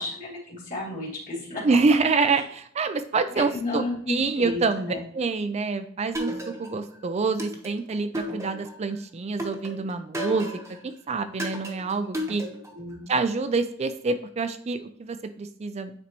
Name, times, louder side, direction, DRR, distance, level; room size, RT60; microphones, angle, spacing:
voice 1, 0.0-1.8 2.3-2.4 3.3-5.0 12.4-13.1, left 2 dB, 40° left, -4 dB, 2.7 m, -33 dB
voice 2, 1.6-4.9 5.1-10.5 10.8-12.4 13.1-15.9, right 4 dB, 35° right, 10 dB, 0.4 m, -26 dB
sound 1, 6.1-6.9 7.4-8.8 9.4-10.8 11.4-12.8, equal, 15° right, 1.0 m, -34 dB
9.3 x 4.0 x 2.9 m, 0.63 s
head